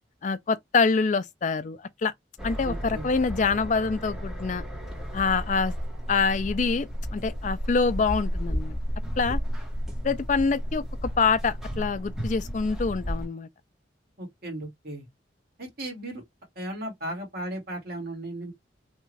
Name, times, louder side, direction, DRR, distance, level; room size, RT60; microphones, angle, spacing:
voice 1, 0.2-2.1 2.4-4.6 5.1-5.7 6.1-8.8 9.2-9.4 10.0-13.5, left 4 dB, 40° left, 0.3 m, -25 dB
sound 1, 2.4-13.3, equal, ahead, 1.1 m, -33 dB
voice 2, 2.6-3.1 14.2-15.1 15.6-16.2 16.6-18.5, right 1 dB, 50° right, 1.9 m, -36 dB
3.5 x 2.4 x 3.1 m
head